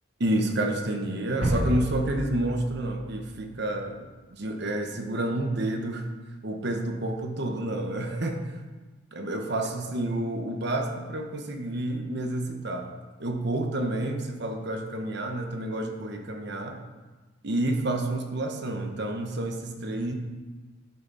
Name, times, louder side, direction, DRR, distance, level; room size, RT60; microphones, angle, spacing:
voice 1, 0.2-4.0 4.3-6.1 6.4-8.5 9.1-12.9 13.2-16.8 17.4-20.1, right 1 dB, 60° right, 4 dB, 1.1 m, -29 dB
sound 1, 1.4-3.9, right 1 dB, 75° right, 2.4 m, -31 dB
10.5 x 6.8 x 5.5 m, 1.3 s
head